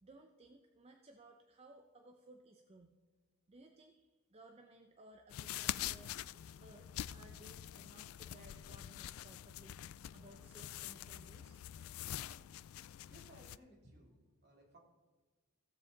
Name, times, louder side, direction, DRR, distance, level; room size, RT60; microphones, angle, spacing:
voice 1, 0.0-3.0 3.5-11.6, right 2 dB, 30° right, 4 dB, 0.6 m, -60 dB
sound 1, 5.3-13.6, left 12 dB, 85° left, 0.3 m, -45 dB
voice 2, 12.9-14.8, right 1 dB, 50° right, -1 dB, 2.4 m, -62 dB
16.0 x 7.4 x 3.9 m, 1.3 s
head